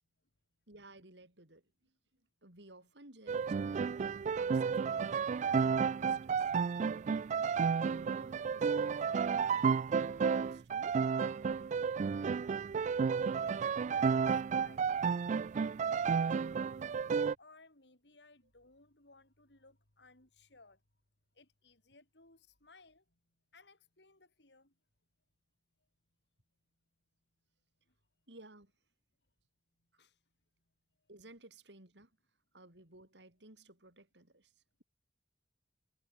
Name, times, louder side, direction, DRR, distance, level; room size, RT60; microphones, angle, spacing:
voice 1, 0.7-1.9 2.4-3.6 4.3-6.5 7.8-9.7 10.3-11.0 28.3-28.7 31.1-32.1 32.5-34.5, right 2 dB, 75° right, 5.2 m, -56 dB
sound 1, 3.3-17.3, right 6 dB, 45° right, 0.3 m, -32 dB
voice 2, 12.7-13.3 13.6-16.6 17.4-20.8 21.3-23.0 23.5-24.7 30.0-30.2, left 3 dB, 70° left, 4.8 m, -62 dB
head